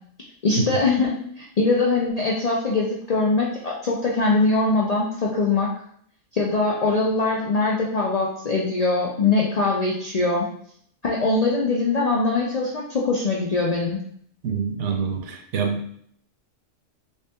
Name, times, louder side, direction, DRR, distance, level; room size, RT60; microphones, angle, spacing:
voice 1, 0.4-5.7 6.3-10.5 11.0-14.0, left 3 dB, 85° left, -4 dB, 0.3 m, -22 dB
voice 2, 14.4-15.9, right 6 dB, 70° right, 5 dB, 0.9 m, -26 dB
3.2 x 3.0 x 3.3 m, 0.64 s
omnidirectional pair, 1.4 m